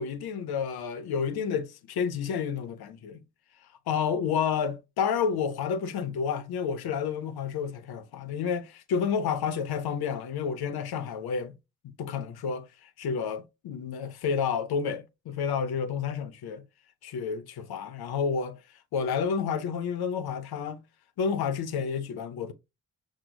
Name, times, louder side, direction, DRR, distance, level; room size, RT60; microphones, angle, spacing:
voice 1, 0.0-3.2 3.9-11.6 11.8-16.6 17.0-18.6 18.9-20.8 21.2-22.5, left 6 dB, 85° left, 0.7 m, -30 dB
6.2 x 2.2 x 3.3 m
supercardioid pair, 45°, 37 cm